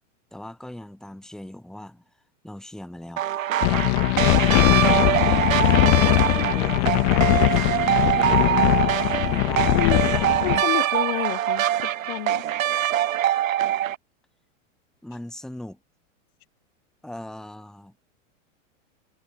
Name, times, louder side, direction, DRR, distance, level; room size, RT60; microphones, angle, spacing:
voice 1, 0.3-2.0 2.4-3.2 3.7-3.9 4.7-5.6 6.3-8.6 9.1-10.6 15.0-15.8 17.0-18.0, left 1 dB, ahead, 4.5 m, -39 dB
sound 1, 3.2-14.0, right 12 dB, 85° right, 1.9 m, -23 dB
sound 2, 3.6-10.6, left 40 dB or more, 30° left, 0.8 m, -20 dB
voice 2, 10.4-12.5, left 21 dB, 45° left, 4.5 m, -29 dB
supercardioid pair, 160°, 39 cm